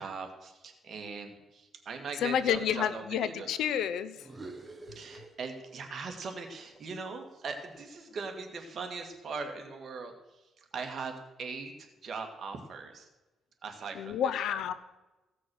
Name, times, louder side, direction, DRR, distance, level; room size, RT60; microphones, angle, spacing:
voice 1, 0.0-3.5 4.9-11.1 11.4-13.1 13.6-14.6, right 4 dB, 50° right, 4 dB, 2.0 m, -40 dB
voice 2, 2.2-4.3 13.9-14.7, left 9 dB, 80° left, 15 dB, 0.7 m, -30 dB
sound 1, 4.2-5.9 6.2-8.4, right 3 dB, 20° right, 1.4 m, -50 dB
16.0 x 6.2 x 6.3 m, 1.1 s
cardioid pair, 90°, 0 cm